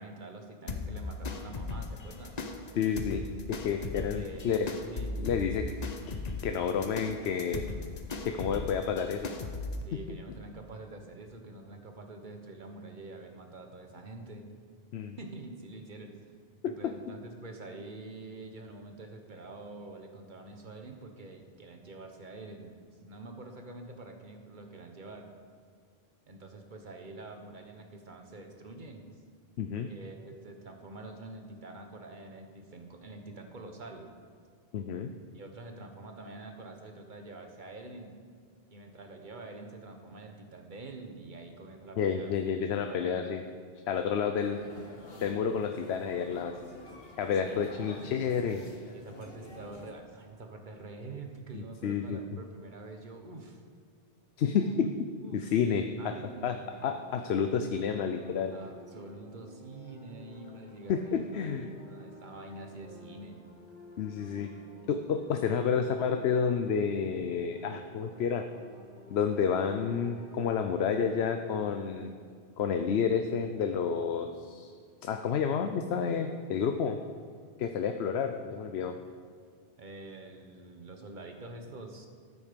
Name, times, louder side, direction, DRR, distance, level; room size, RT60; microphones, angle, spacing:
voice 1, 0.0-2.4 4.1-4.6 4.9-5.3 9.7-14.5 15.2-16.1 16.7-25.3 26.3-29.0 29.7-34.1 35.3-38.1 38.7-42.3 42.8-43.4 47.4-48.6 48.9-53.6 54.5-54.8 55.2-56.9 58.5-63.4 79.8-82.1, right 2 dB, 50° right, 4 dB, 1.4 m, -46 dB
sound 1, 0.7-9.8, left 4 dB, 45° left, 0.9 m, -38 dB
voice 2, 2.7-3.2 3.5-4.7 5.2-5.7 6.4-7.6 8.2-9.3 9.9-10.2 14.9-15.2 16.6-16.7 29.6-29.9 34.7-35.1 42.0-43.4 43.9-44.6 45.2-46.5 47.2-48.6 51.5-52.4 54.4-54.9 55.3-56.2 56.4-58.5 60.9-61.7 64.0-64.5 64.9-68.5 69.1-72.1 72.6-74.7 75.0-77.0 77.6-78.9, left 6 dB, 85° left, 6 dB, 0.9 m, -30 dB
sound 2, 44.4-49.9, left 1 dB, 70° left, 1.7 m, -48 dB
sound 3, 56.6-71.6, left 1 dB, 90° right, 4.0 m, -52 dB
13.5 x 8.5 x 5.2 m, 2.2 s
omnidirectional pair, 1.0 m